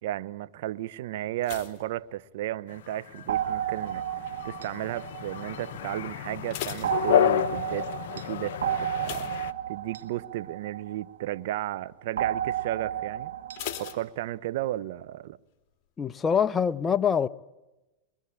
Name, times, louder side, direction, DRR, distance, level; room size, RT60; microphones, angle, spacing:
voice 1, 0.0-4.0 4.4-8.5 8.8-9.3 9.7-13.3 13.8-15.4, right 14 dB, 70° right, 0.9 m, -34 dB
sound 1, 1.4-2.9 3.1-3.7 4.3-4.6 4.9-5.0 5.4-5.5 6.2-7.7 9.0-10.1 10.5-10.8 11.1-11.2 13.6-14.8 15.0-15.1, left 10 dB, 50° left, 3.1 m, -40 dB
sound 2, 2.7-9.5, left 11 dB, 75° left, 0.9 m, -31 dB
sound 3, 3.3-6.1 6.8-11.4 12.2-14.0, right 10 dB, 90° right, 1.6 m, -32 dB
voice 2, 16.0-17.3, left 7 dB, 20° left, 0.9 m, -24 dB
23.5 x 23.5 x 9.9 m
hypercardioid pair, 110°, 0 cm